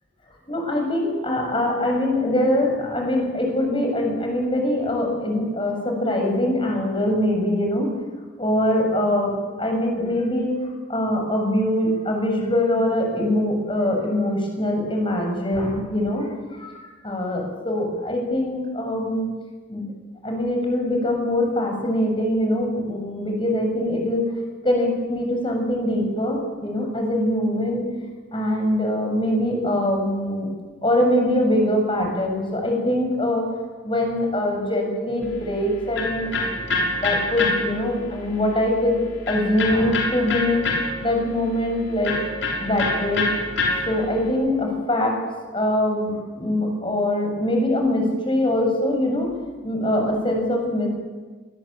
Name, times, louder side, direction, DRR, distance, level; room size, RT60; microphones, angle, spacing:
voice 1, 0.5-7.9 8.4-10.6 10.9-19.3 19.7-19.8 20.2-24.3 24.6-27.9 28.3-30.5 30.8-33.5 33.8-39.0 39.3-40.6 41.0-42.1 42.6-43.2 43.9-45.2 45.5-49.3 49.6-50.9, left 1 dB, 25° left, 2 dB, 7.4 m, -23 dB
Electric guitar, 35.2-44.3, left 2 dB, 80° left, 6.4 m, -27 dB
26.0 x 21.0 x 8.9 m, 1.3 s
head